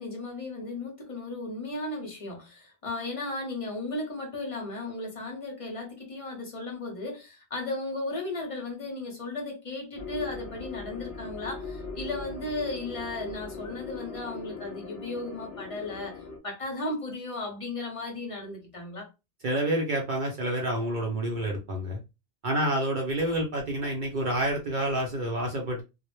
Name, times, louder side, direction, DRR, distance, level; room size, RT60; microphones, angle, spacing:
voice 1, 0.0-19.1, left 2 dB, 35° left, 0.6 m, -35 dB
sound 1, 10.0-16.4, left 4 dB, 70° left, 0.8 m, -40 dB
voice 2, 19.4-22.0 22.4-25.8, right 1 dB, 55° right, 0.6 m, -28 dB
2.1 x 2.0 x 2.9 m
omnidirectional pair, 1.1 m